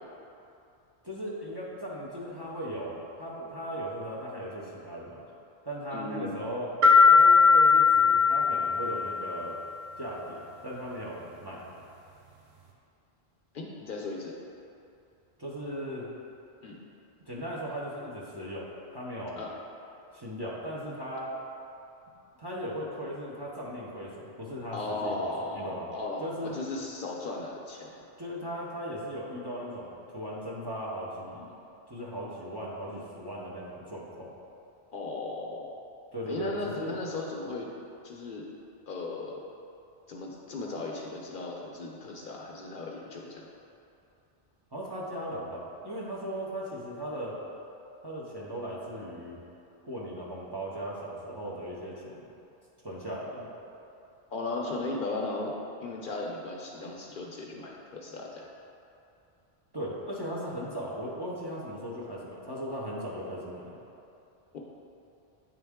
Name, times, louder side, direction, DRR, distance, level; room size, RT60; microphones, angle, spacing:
voice 1, 1.0-5.2 5.6-6.7 7.1-9.6 10.0-11.6 15.4-16.1 17.3-19.4 20.1-21.3 22.4-25.9 26.2-26.6 28.2-31.5 31.9-34.3 36.1-37.0 44.7-47.4 48.0-49.4 49.8-52.3 52.8-53.5 59.7-63.8, equal, 25° right, -6 dB, 0.7 m, -37 dB
voice 2, 5.9-6.4 13.5-14.3 16.6-16.8 19.4-19.5 24.7-27.9 34.9-35.7 36.3-37.7 38.0-38.5 38.9-39.4 40.1-43.5 54.3-55.5 55.8-58.4 64.5-64.6, left 2 dB, 60° left, -1 dB, 0.7 m, -36 dB
sound 1, 6.8-9.5, left 5 dB, 70° right, 0.8 m, -19 dB
8.8 x 3.6 x 3.5 m, 2.7 s
omnidirectional pair, 1.1 m